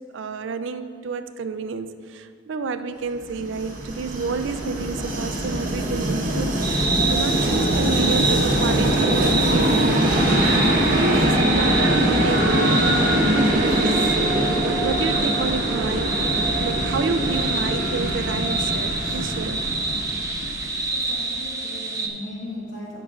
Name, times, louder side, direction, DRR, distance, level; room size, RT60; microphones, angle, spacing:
voice 1, 0.1-14.0 14.3-16.1 16.6-19.6, right 4 dB, 70° right, 10 dB, 0.4 m, -30 dB
Train, 3.3-21.0, right 1 dB, 45° right, 1.3 m, -22 dB
sound 1, 6.6-22.1, right 3 dB, 15° right, 0.5 m, -27 dB
voice 2, 20.8-23.0, left 1 dB, 80° left, -5 dB, 2.1 m, -37 dB
15.0 x 6.2 x 2.5 m, 2.1 s
head